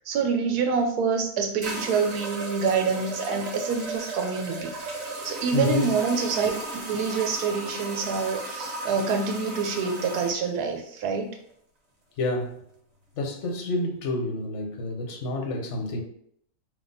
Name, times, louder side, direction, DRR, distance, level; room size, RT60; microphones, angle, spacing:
voice 1, 0.1-6.5 6.9-11.4, right 5 dB, 85° right, 4 dB, 1.2 m, -26 dB
sound 1, 0.8-0.9 1.6-10.4, right 2 dB, 60° right, 1.4 m, -35 dB
voice 2, 5.5-5.9 12.2-12.6 13.2-16.0, left 2 dB, 55° left, 2 dB, 1.0 m, -29 dB
3.6 x 2.8 x 3.9 m, 0.69 s
omnidirectional pair, 1.6 m